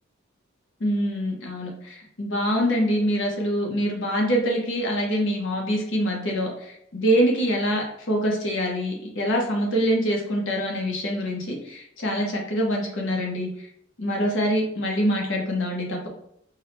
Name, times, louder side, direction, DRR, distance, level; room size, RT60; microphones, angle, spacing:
voice 1, 0.8-13.7 14.0-16.1, equal, 65° left, 0 dB, 1.0 m, -25 dB
4.6 x 2.2 x 3.1 m, 0.70 s
head